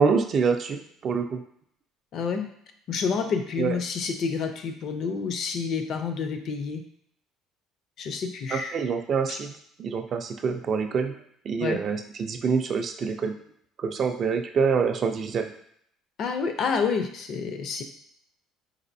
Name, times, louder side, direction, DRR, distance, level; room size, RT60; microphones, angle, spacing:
voice 1, 0.0-1.4 3.6-3.8 8.5-9.5 9.8-11.2 11.5-13.4 13.8-15.5, right 5 dB, 35° right, 6 dB, 0.3 m, -26 dB
voice 2, 2.1-2.5 2.9-6.8 8.0-8.7 9.3-9.4 11.6-11.8 16.2-17.8, left 5 dB, 45° left, 6 dB, 0.4 m, -29 dB
4.1 x 2.5 x 2.6 m, 0.68 s
cardioid pair, 145°, 0 cm